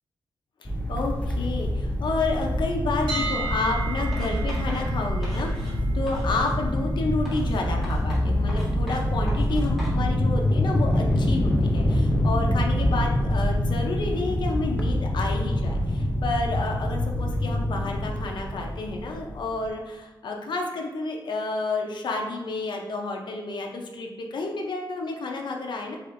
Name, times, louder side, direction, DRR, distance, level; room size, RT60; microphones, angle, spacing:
voice 1, 0.6-26.0, left 3 dB, 65° left, 1 dB, 0.5 m, -30 dB
sound 1, 0.6-19.6, left 1 dB, 15° left, 0.5 m, -25 dB
sound 2, 3.1-15.0, right 3 dB, 70° right, 1.4 m, -40 dB
Writing, 4.1-5.8 6.1-6.6 7.2-10.0, equal, ahead, 1.3 m, -38 dB
4.2 x 4.0 x 2.5 m, 1.1 s
wide cardioid pair, 145°, 8 cm